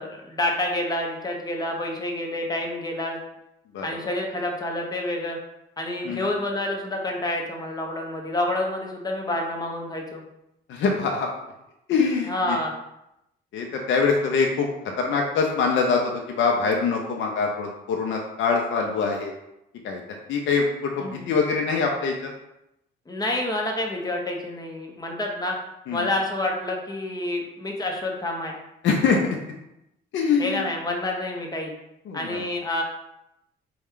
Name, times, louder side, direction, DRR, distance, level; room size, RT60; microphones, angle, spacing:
voice 1, 0.0-3.2 3.8-5.4 5.8-10.2 12.3-12.8 21.0-21.3 23.1-25.6 25.9-28.6 30.4-31.7 32.1-32.8, left 1 dB, 20° left, 0 dB, 0.8 m, -28 dB
voice 2, 10.7-11.3 11.9-12.6 13.5-14.7 15.0-19.3 19.8-20.0 20.3-22.3 25.9-26.1 28.8-29.4 30.1-30.7 32.1-32.5, left 5 dB, 70° left, 1 dB, 0.6 m, -24 dB
4.1 x 2.3 x 3.6 m, 0.86 s
cardioid pair, 90°, 20 cm